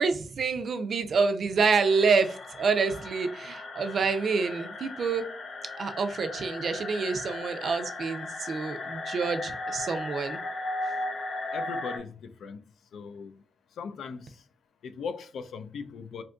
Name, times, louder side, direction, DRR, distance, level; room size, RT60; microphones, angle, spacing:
voice 1, 0.0-5.3 5.8-10.4, right 5 dB, 60° right, 0.4 m, -27 dB
sound 1, 1.6-12.0, left 2 dB, 60° left, 0.7 m, -37 dB
voice 2, 11.5-12.6 12.9-13.4 13.8-14.4 14.8-16.2, left 5 dB, 85° left, 0.3 m, -39 dB
2.6 x 2.5 x 3.4 m
wide cardioid pair, 120°, 0 cm